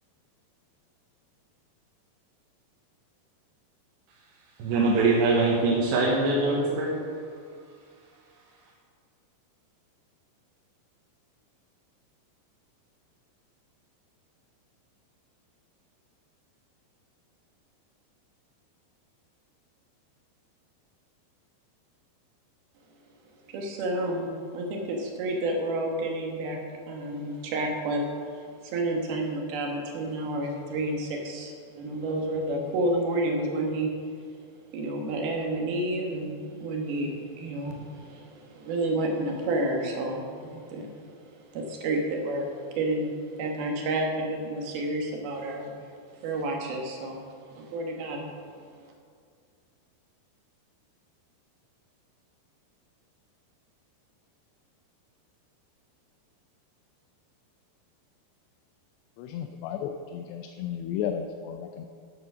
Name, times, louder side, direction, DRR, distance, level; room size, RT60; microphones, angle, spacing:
voice 1, 4.6-6.9, right 3 dB, 85° right, -4 dB, 3.4 m, -23 dB
voice 2, 23.5-26.6 26.9-28.0 28.3-33.9 34.7-45.7 46.2-47.2 47.6-48.3, right 1 dB, 65° right, 1 dB, 3.1 m, -30 dB
voice 3, 59.2-61.9, left 8 dB, 85° left, 5 dB, 2.7 m, -33 dB
10.0 x 9.7 x 6.2 m, 2.2 s
omnidirectional pair, 5.0 m